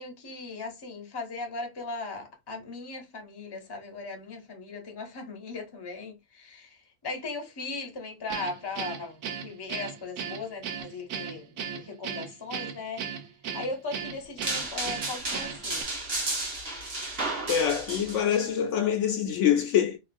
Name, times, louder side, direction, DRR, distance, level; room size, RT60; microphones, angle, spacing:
voice 1, 0.0-13.0 13.5-15.9, left 3 dB, 25° left, 0.6 m, -38 dB
Guitar, 8.3-15.8, right 7 dB, 80° right, 1.0 m, -36 dB
sound 1, 14.4-18.4, right 2 dB, 45° right, 1.3 m, -33 dB
voice 2, 17.5-20.0, left 9 dB, 70° left, 0.8 m, -25 dB
3.0 x 2.4 x 2.4 m
omnidirectional pair, 1.4 m